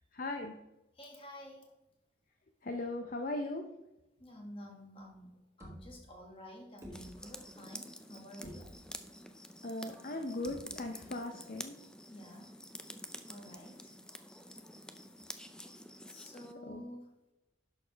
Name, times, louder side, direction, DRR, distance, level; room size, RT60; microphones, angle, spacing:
voice 1, 0.1-0.5 2.6-3.7 9.6-11.7 16.7-16.8, left 2 dB, 45° left, 4 dB, 0.6 m, -38 dB
voice 2, 0.9-1.7 4.2-8.7 12.1-12.5 13.3-13.9 16.1-17.1, left 1 dB, 30° left, 0 dB, 1.8 m, -50 dB
sound 1, 5.0-5.1 5.6-6.4 6.8-7.6 8.0-8.1 8.4-9.2 10.4-11.1, equal, 15° right, 1.6 m, -51 dB
sound 2, 6.9-16.5, left 1 dB, 5° left, 0.4 m, -49 dB
10.5 x 6.5 x 3.4 m, 0.95 s
head